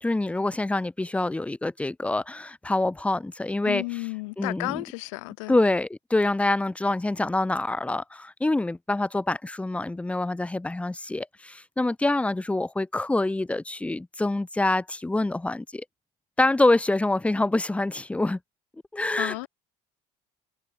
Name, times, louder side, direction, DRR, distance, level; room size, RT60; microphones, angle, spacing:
voice 1, 0.0-3.8 4.4-4.8 5.5-15.8 16.4-18.4 18.9-19.5, left 2 dB, 10° left, 0.9 m, -26 dB
voice 2, 3.6-5.6 19.2-19.5, left 25 dB, 90° left, 1.7 m, -32 dB
supercardioid pair, 105°, 16 cm